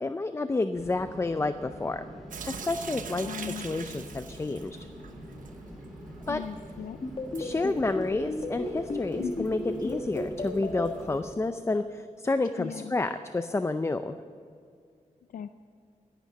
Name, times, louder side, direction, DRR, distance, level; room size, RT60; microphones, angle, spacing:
voice 1, 0.0-2.1 2.5-4.9 6.3-6.4 7.4-14.2, left 3 dB, 20° left, 10 dB, 0.5 m, -30 dB
sound 1, 0.7-11.2, equal, ahead, 3.8 m, -45 dB
Sink (filling or washing) / Drip, 2.3-11.2, right 6 dB, 80° right, 1.0 m, -45 dB
voice 2, 3.2-3.7 6.3-7.0 9.2-9.5 12.6-12.9 15.3-15.5, left 8 dB, 85° left, 10 dB, 0.4 m, -38 dB
sound 2, 7.0-10.9, left 2 dB, 45° left, 1.8 m, -32 dB
12.0 x 11.0 x 8.3 m, 2.3 s
wide cardioid pair, 95°, 13 cm